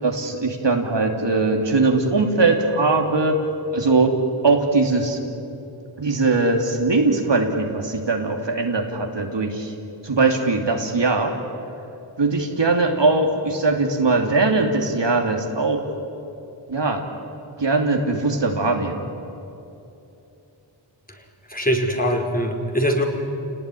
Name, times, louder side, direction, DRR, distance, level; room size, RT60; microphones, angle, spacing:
voice 1, 0.0-3.4 3.7-4.1 4.4-5.2 6.0-9.7 10.0-11.3 12.2-15.8 16.7-17.0 17.6-19.0, right 3 dB, 60° right, 3 dB, 2.9 m, -20 dB
voice 2, 21.5-23.0, equal, 15° left, 1 dB, 4.5 m, -22 dB
28.5 x 19.0 x 10.0 m, 2.8 s
cardioid pair, 50°, 49 cm